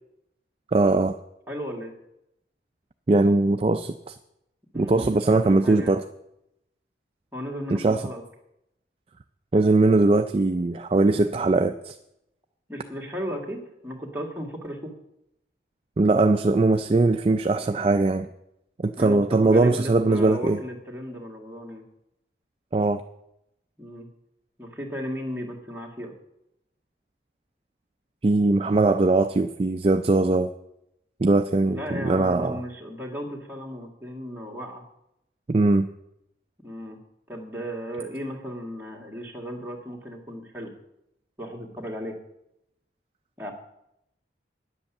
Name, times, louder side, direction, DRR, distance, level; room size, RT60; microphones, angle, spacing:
voice 1, 0.7-1.2 3.1-4.1 4.7-6.0 7.7-8.0 9.5-12.0 16.0-18.3 18.8-20.6 22.7-23.0 28.2-30.5 31.2-32.6 35.5-35.9, right 2 dB, 30° right, 8 dB, 0.4 m, -20 dB
voice 2, 1.5-1.9 4.7-5.9 7.3-8.2 12.7-14.9 19.0-21.8 23.8-24.1 24.6-26.1 31.7-34.8 36.6-37.0 37.3-40.7 41.4-42.2 43.4-43.5, equal, 10° right, -1 dB, 1.9 m, -35 dB
10.0 x 7.9 x 7.2 m, 0.83 s
head